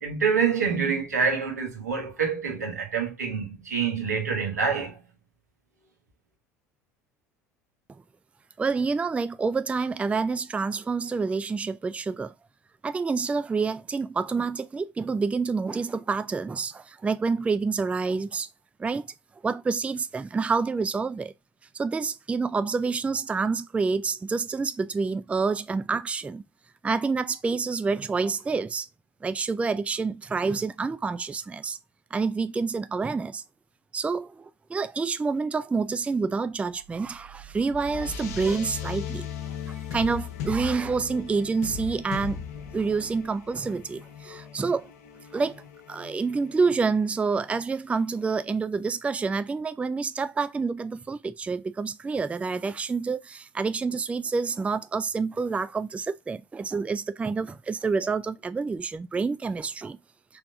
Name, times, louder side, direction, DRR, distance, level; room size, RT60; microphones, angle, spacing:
voice 1, 0.0-5.0, right 6 dB, 85° right, 1.5 m, -26 dB
voice 2, 8.6-12.3 12.8-18.5 18.8-19.1 19.4-21.3 21.7-26.4 26.8-28.9 29.2-31.8 32.1-33.4 33.9-42.4 42.7-44.9 45.3-60.0, right 4 dB, 15° right, 0.3 m, -28 dB
sound 1, 36.8-47.6, left 6 dB, 70° left, 1.0 m, -38 dB
4.6 x 3.5 x 2.5 m
figure-of-eight pair, 70°, 9 cm